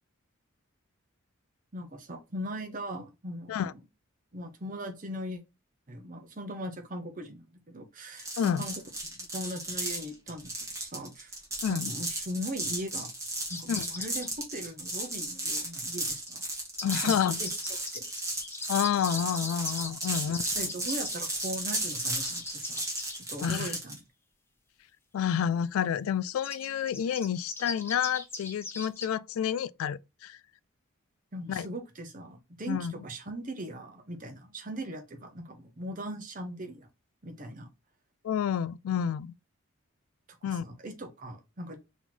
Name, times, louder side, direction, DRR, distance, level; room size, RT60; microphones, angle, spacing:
voice 1, 1.7-3.8 4.3-5.4 5.9-8.7 9.0-11.4 11.7-13.1 13.5-16.4 16.9-17.5 17.9-18.0 20.1-22.8 23.1-24.0 31.3-36.9 37.2-37.7 40.4-41.8, equal, 40° right, 0.9 m, -39 dB
sound 1, 8.2-24.0, right 2 dB, 15° right, 1.2 m, -35 dB
sound 2, 13.5-14.3 16.1-23.2 26.4-29.1, left 3 dB, 10° left, 0.6 m, -41 dB
voice 2, 16.8-17.4 18.7-20.5 23.4-23.7 25.1-30.4 31.5-31.7 32.7-32.9 38.2-39.3 40.4-40.7, left 8 dB, 80° left, 0.3 m, -29 dB
4.0 x 3.0 x 3.9 m
head